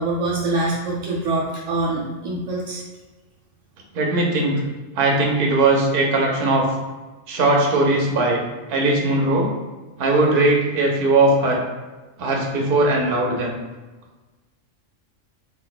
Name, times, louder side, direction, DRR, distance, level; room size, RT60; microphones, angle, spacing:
voice 1, 0.0-2.8, right 2 dB, 80° right, -3 dB, 1.0 m, -24 dB
voice 2, 3.9-4.5 4.9-6.6 7.3-8.4 8.7-9.5 10.0-11.6 12.2-13.6, right 2 dB, 55° right, -1 dB, 0.7 m, -19 dB
2.6 x 2.2 x 3.9 m, 1.2 s
omnidirectional pair, 1.3 m